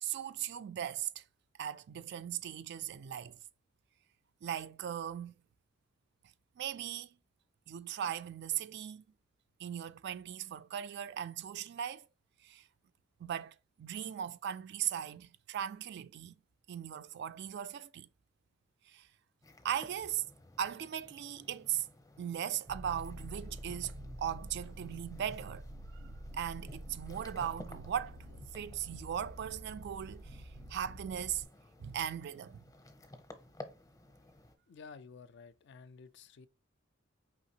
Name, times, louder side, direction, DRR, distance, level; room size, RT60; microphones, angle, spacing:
voice 1, 0.0-1.2 1.6-3.4 4.4-5.3 6.6-7.1 7.7-9.0 9.6-12.1 12.4-12.6 13.2-16.4 16.7-18.1 18.9-19.1 19.6-20.2 20.6-21.9 22.2-25.6 25.9-26.0 26.3-28.2 28.5-31.4 31.8-32.6, right 9 dB, 60° right, 0.3 m, -38 dB
sound 1, 19.4-34.6, left 1 dB, 20° left, 0.6 m, -55 dB
sound 2, 22.7-31.5, right 1 dB, 85° right, 0.8 m, -48 dB
voice 2, 34.7-36.5, left 5 dB, 60° left, 0.4 m, -52 dB
4.9 x 3.2 x 2.8 m
head